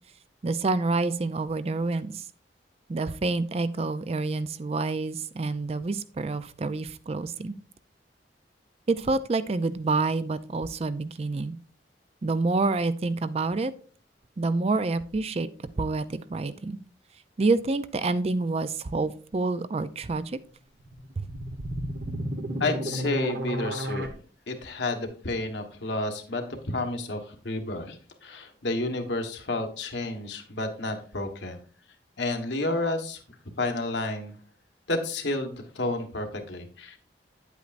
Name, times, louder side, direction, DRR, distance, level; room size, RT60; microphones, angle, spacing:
voice 1, 0.4-2.2 2.9-7.6 8.9-11.6 12.2-13.7 14.4-15.5 15.8-16.8 17.4-20.3 21.2-21.3, right 3 dB, 35° right, 14 dB, 0.4 m, -27 dB
sound 1, 20.8-24.1, right 1 dB, 65° right, 1.1 m, -32 dB
voice 2, 22.6-24.1 24.5-31.6 32.2-33.2 33.6-34.3 34.9-37.0, left 2 dB, 80° left, 4 dB, 1.4 m, -30 dB
9.2 x 8.2 x 2.5 m, 0.41 s
head